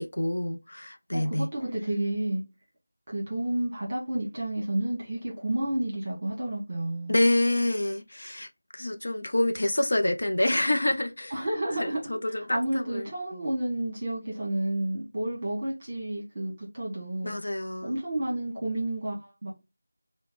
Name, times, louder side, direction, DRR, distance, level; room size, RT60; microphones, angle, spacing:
voice 1, 0.0-1.5 7.1-8.5 8.7-11.3 11.8-13.1 17.2-17.9, left 1 dB, 60° left, 0.6 m, -27 dB
voice 2, 1.1-2.4 3.1-7.2 11.3-12.0 12.3-17.3 17.8-19.5, right 1 dB, 20° right, 1.2 m, -31 dB
5.7 x 2.2 x 3.7 m
figure-of-eight pair, 180°, 0 cm